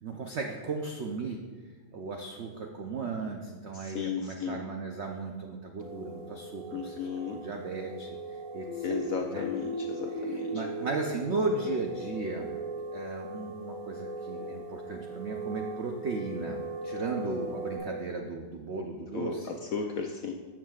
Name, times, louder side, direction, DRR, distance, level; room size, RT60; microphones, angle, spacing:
voice 1, 0.0-1.4 1.9-9.4 10.2-12.5 12.9-19.6, right 3 dB, 90° right, 2 dB, 0.5 m, -36 dB
voice 2, 3.7-4.6 6.7-7.4 8.8-10.6 19.1-19.4 19.7-20.3, left 5 dB, 75° left, 2 dB, 0.8 m, -34 dB
sound 1, 5.8-17.8, right 2 dB, 65° right, 2.9 m, -40 dB
sound 2, 8.7-12.3, left 1 dB, 10° left, 1.4 m, -38 dB
13.5 x 7.4 x 2.4 m, 1.4 s
omnidirectional pair, 2.0 m